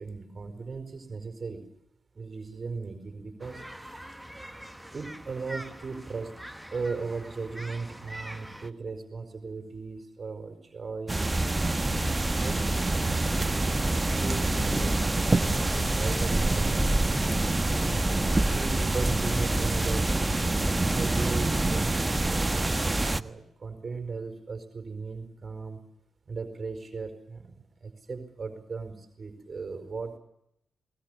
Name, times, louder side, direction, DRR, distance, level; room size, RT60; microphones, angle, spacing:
voice 1, 0.0-1.6 2.1-4.3 4.7-6.4 6.7-13.6 14.1-16.9 18.5-20.1 20.9-22.0 23.1-25.8 26.3-30.2, right 4 dB, 45° right, 8 dB, 4.7 m, -37 dB
sound 1, 3.4-8.7, right 1 dB, 5° right, 1.6 m, -44 dB
sound 2, 11.1-23.2, right 2 dB, 25° right, 1.2 m, -26 dB
sound 3, 16.5-21.5, left 5 dB, 60° left, 5.5 m, -45 dB
20.0 x 20.0 x 8.0 m, 0.79 s
supercardioid pair, 50°, 0 cm